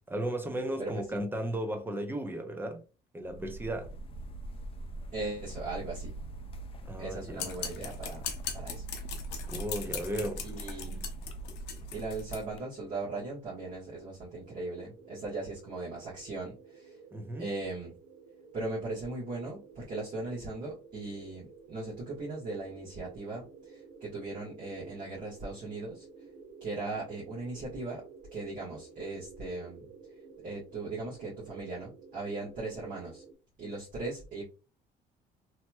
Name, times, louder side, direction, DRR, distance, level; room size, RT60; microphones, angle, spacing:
voice 1, 0.1-2.8 3.1-3.9 6.9-7.5 9.5-10.5 17.1-17.5, right 1 dB, 10° right, 0.6 m, -35 dB
voice 2, 0.8-1.2 5.1-6.1 7.0-8.2 8.5-8.8 10.4-11.1 11.9-16.9 17.4-18.0 18.5-26.0 26.6-28.0 28.3-29.9 30.4-33.2 33.6-34.4, right 2 dB, 50° right, 1.3 m, -38 dB
sound 1, 3.2-12.6, right 2 dB, 35° left, 0.4 m, -42 dB
sound 2, 7.4-12.4, left 8 dB, 85° left, 0.7 m, -39 dB
sound 3, 14.4-33.3, right 5 dB, 85° right, 0.7 m, -52 dB
3.0 x 2.8 x 2.2 m
cardioid pair, 110°, 17 cm